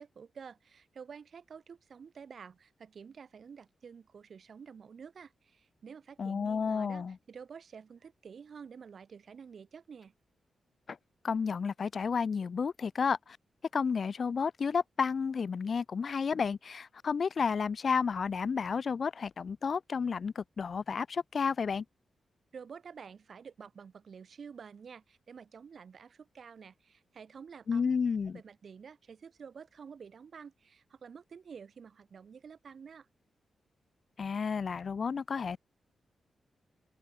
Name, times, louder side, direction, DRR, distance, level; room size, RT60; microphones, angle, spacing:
voice 1, 0.0-10.1 22.5-27.9 28.3-33.1, right 6 dB, 65° right, 6.5 m, -50 dB
voice 2, 6.2-7.2 10.9-11.0 11.2-13.4 13.7-21.8 27.7-28.4 34.2-35.6, left 5 dB, 60° left, 2.1 m, -31 dB
open air
cardioid pair, 55°, 0 cm